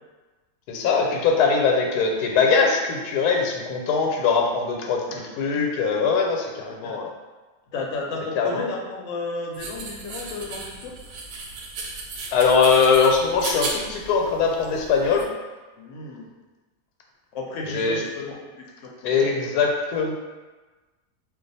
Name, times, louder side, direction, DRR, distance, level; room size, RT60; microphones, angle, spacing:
voice 1, 0.7-7.1 8.3-8.6 12.3-15.2 17.6-18.0 19.0-20.1, left 5 dB, 85° left, 1 dB, 1.1 m, -21 dB
voice 2, 7.7-10.9 15.8-16.3 17.3-18.7 19.0-19.3, left 3 dB, 65° left, -1 dB, 0.8 m, -33 dB
sound 1, 9.5-15.2, right 3 dB, 70° right, 0.9 m, -35 dB
2.4 x 2.3 x 4.0 m, 1.2 s
omnidirectional pair, 1.6 m